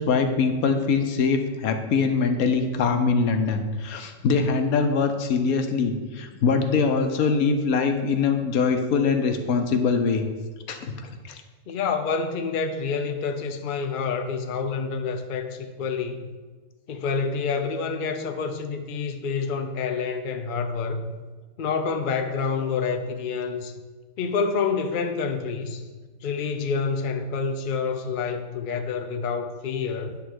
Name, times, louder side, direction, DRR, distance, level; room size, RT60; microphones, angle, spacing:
voice 1, 0.0-10.3 10.7-11.4, left 5 dB, 75° left, 1.2 m, -23 dB
voice 2, 11.7-16.3 16.9-21.1 21.6-23.7 24.2-25.8 26.2-30.2, left 5 dB, 55° left, 0.6 m, -28 dB
9.7 x 3.5 x 6.3 m
omnidirectional pair, 1.6 m